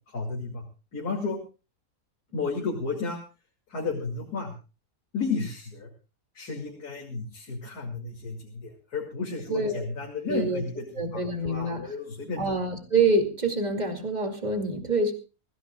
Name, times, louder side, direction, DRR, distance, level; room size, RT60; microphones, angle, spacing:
voice 1, 0.1-0.6 0.9-1.4 2.3-3.2 3.7-4.5 5.1-5.9 6.3-10.8 11.1-12.4, left 4 dB, 75° left, -1 dB, 3.0 m, -32 dB
voice 2, 9.5-9.9 10.3-10.6 10.9-11.9 12.4-15.1, right 3 dB, 25° right, 4 dB, 2.6 m, -26 dB
24.0 x 16.0 x 2.3 m, 0.32 s
omnidirectional pair, 1.7 m